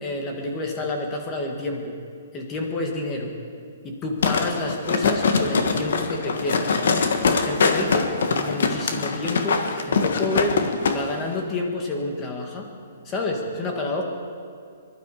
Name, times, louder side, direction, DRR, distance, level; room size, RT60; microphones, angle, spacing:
voice 1, 0.0-2.0 2.3-3.3 3.8-6.7 7.3-10.6 10.9-12.7 13.0-14.0, left 2 dB, 15° left, 2 dB, 1.6 m, -29 dB
sound 1, 4.2-11.0 11.3-11.4, left 5 dB, 60° left, 1.4 m, -23 dB
23.5 x 12.0 x 4.9 m, 2.3 s
hypercardioid pair, 175°, 0 cm